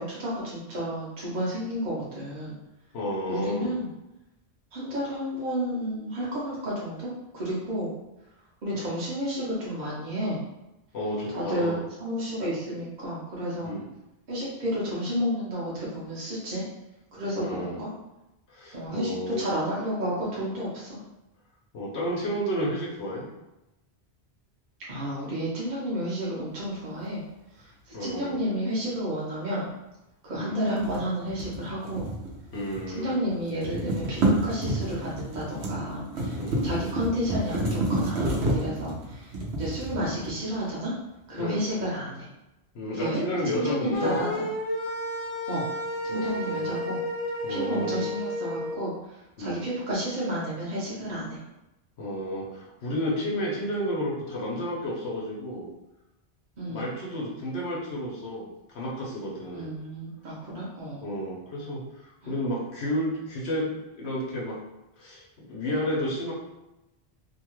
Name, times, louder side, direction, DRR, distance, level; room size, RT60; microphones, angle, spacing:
voice 1, 0.0-2.6 3.3-3.9 4.7-7.9 8.6-10.4 11.3-13.7 14.3-16.7 17.1-17.9 18.7-21.0 24.9-27.2 27.6-29.7 30.2-32.1 32.9-40.9 41.3-42.3 42.9-43.2 43.5-44.4 45.5-45.7 46.0-47.0 47.5-48.9 49.4-51.4 56.6-56.9 59.5-61.0 62.2-62.3, equal, 50° right, -7 dB, 0.9 m, -31 dB
voice 2, 2.9-3.7 8.7-8.9 10.9-11.8 13.6-13.9 17.4-17.8 18.5-19.5 21.7-23.3 27.9-28.4 30.4-30.6 32.5-33.2 36.4-36.6 41.4-41.6 42.7-44.2 46.1-46.7 47.4-48.0 49.4-49.6 52.0-55.7 56.6-59.7 61.0-64.6 65.0-66.3, equal, 90° left, -3 dB, 1.0 m, -31 dB
sound 1, 30.7-33.0 33.3-40.6, right 1 dB, 85° right, 0.9 m, -29 dB
sound 2, 43.9-48.8, equal, 40° left, 0.7 m, -32 dB
2.8 x 2.3 x 3.0 m, 0.94 s
omnidirectional pair, 1.1 m